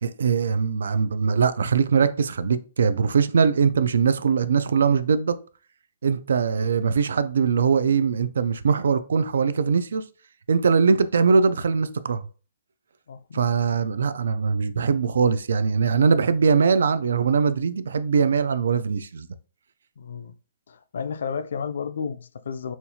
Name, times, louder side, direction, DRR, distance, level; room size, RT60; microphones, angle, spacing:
voice 1, 0.0-5.4 6.0-10.0 10.5-12.3 13.3-19.3, right 5 dB, 80° right, 0.3 m, -21 dB
voice 2, 13.1-13.5 20.0-20.3 20.7-22.7, left 6 dB, 70° left, 0.3 m, -32 dB
4.3 x 2.3 x 2.7 m
hypercardioid pair, 170°, 0 cm